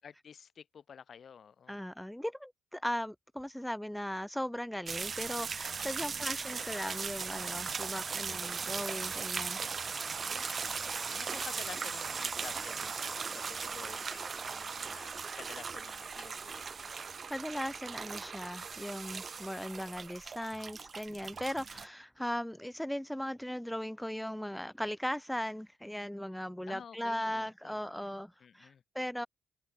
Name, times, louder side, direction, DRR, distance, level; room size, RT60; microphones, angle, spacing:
voice 1, 0.0-1.8 6.0-6.5 8.0-8.7 10.8-16.6 26.7-27.8 28.4-28.8, left 7 dB, 50° left, 6.3 m, -51 dB
voice 2, 1.7-9.6 17.3-29.3, equal, 5° left, 1.1 m, -38 dB
sound 1, 4.9-21.9, right 5 dB, 40° right, 2.1 m, -38 dB
cardioid pair, 90°, 0 cm